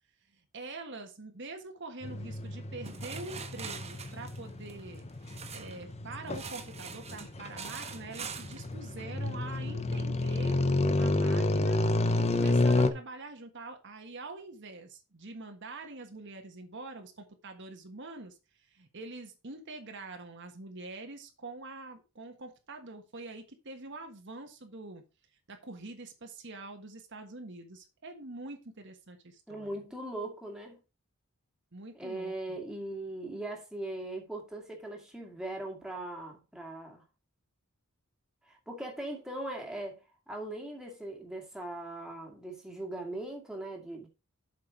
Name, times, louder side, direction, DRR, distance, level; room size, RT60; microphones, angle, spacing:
voice 1, 0.5-5.0 5.5-10.6 11.0-11.8 12.2-18.4 18.7-25.0 25.5-29.8 31.7-32.6, right 2 dB, 55° right, 1.5 m, -45 dB
sound 1, 2.0-12.9, left 2 dB, 30° left, 0.8 m, -29 dB
sound 2, 2.8-5.8 6.3-8.7, right 6 dB, 30° right, 1.2 m, -44 dB
voice 2, 29.5-30.8 31.9-37.0 38.5-40.0 40.3-44.1, right 1 dB, 5° right, 2.1 m, -40 dB
7.7 x 6.0 x 4.9 m
head